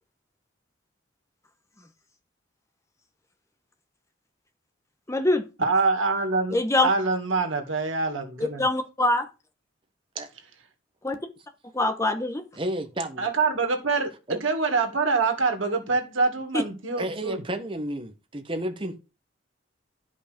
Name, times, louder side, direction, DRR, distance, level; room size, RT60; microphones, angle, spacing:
voice 1, 5.1-5.4 6.5-6.9 8.4-9.2 11.0-11.2 11.7-12.4, left 2 dB, 15° left, 1.0 m, -24 dB
voice 2, 5.6-8.6 13.2-17.4, right 4 dB, 90° right, 2.1 m, -25 dB
voice 3, 12.5-13.3 14.3-14.4 17.0-18.9, right 1 dB, 25° right, 1.1 m, -31 dB
11.5 x 5.4 x 5.2 m
head